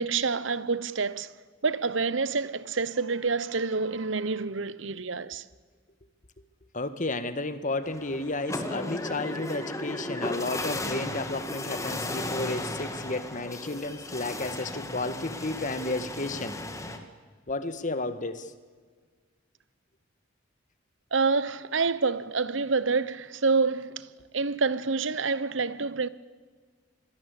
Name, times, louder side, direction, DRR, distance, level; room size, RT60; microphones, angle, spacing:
voice 1, 0.0-1.3 1.6-5.4 21.1-26.1, right 4 dB, 70° right, 1.0 m, -27 dB
voice 2, 6.7-16.6 17.5-18.5, left 2 dB, 40° left, 1.7 m, -32 dB
sound 1, 7.8-17.0, left 2 dB, 15° left, 2.3 m, -35 dB
27.0 x 21.0 x 8.5 m
head